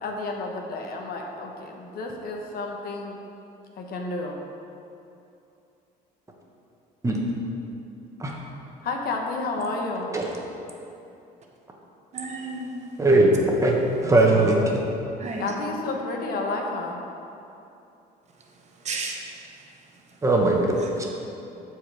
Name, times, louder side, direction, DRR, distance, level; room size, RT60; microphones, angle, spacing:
voice 1, 0.0-3.2 3.8-4.4 8.8-10.1 15.4-17.0, left 3 dB, 65° left, 1 dB, 1.1 m, -31 dB
voice 2, 12.1-12.8 14.0-14.5 15.2-15.6 18.6-19.2 20.8-20.9, right 3 dB, 45° right, 1 dB, 1.0 m, -33 dB
voice 3, 13.0-13.3 13.6-13.8 14.0-14.6 20.2-20.6 21.0-21.1, right 2 dB, 20° right, -1 dB, 1.3 m, -19 dB
14.0 x 4.7 x 3.5 m, 2.7 s
cardioid pair, 110°, 17 cm